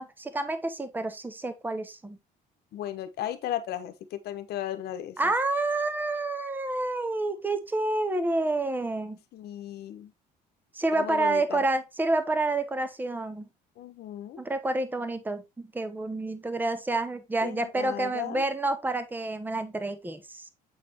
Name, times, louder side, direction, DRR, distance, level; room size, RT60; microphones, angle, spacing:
voice 1, 0.0-2.2 5.2-9.2 10.7-13.5 14.4-20.5, right 2 dB, 10° right, 0.9 m, -29 dB
voice 2, 2.7-5.3 9.3-10.1 10.9-11.6 13.8-14.4 17.4-18.4, left 11 dB, 70° left, 1.0 m, -35 dB
7.8 x 4.2 x 2.9 m
cardioid pair, 110°, 17 cm